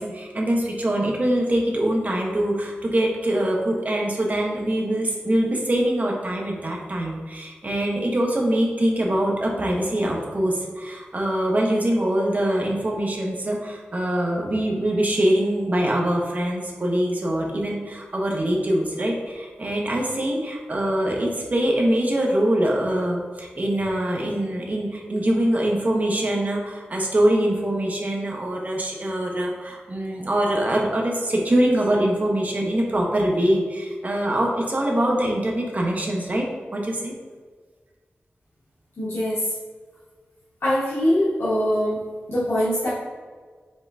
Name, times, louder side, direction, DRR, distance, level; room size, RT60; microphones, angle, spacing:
voice 1, 0.0-36.4 36.7-37.1, right 1 dB, 40° right, -1 dB, 1.0 m, -23 dB
voice 2, 39.0-39.5 40.6-42.9, equal, 80° left, -11 dB, 1.3 m, -23 dB
5.3 x 3.7 x 2.6 m, 1.5 s
wide cardioid pair, 80°, 4 cm